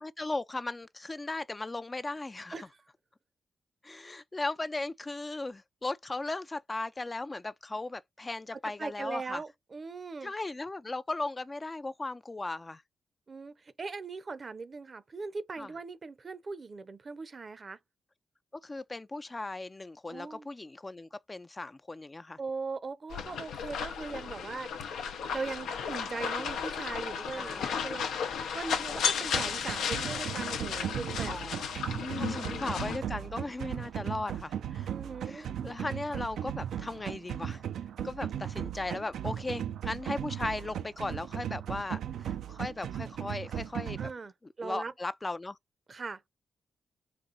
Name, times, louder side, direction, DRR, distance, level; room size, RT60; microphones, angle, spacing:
voice 1, 0.0-2.6 3.8-9.4 10.2-12.8 15.6-15.7 18.6-22.4 27.3-28.0 31.3-31.7 32.1-34.9 35.2-37.6 38.0-44.0 44.6-45.6, left 2 dB, 30° left, 0.4 m, -37 dB
voice 2, 8.8-10.3 13.3-17.8 20.1-20.5 22.4-24.7 25.3-31.3 32.0-32.7 34.9-35.5 44.0-44.3 44.6-44.9 45.9-46.2, right 4 dB, 45° right, 0.7 m, -40 dB
sound 1, 23.1-33.0, left 7 dB, 85° left, 0.7 m, -34 dB
sound 2, 29.3-44.1, right 10 dB, 80° right, 0.4 m, -37 dB
4.1 x 2.6 x 3.9 m
supercardioid pair, 55°, 0 cm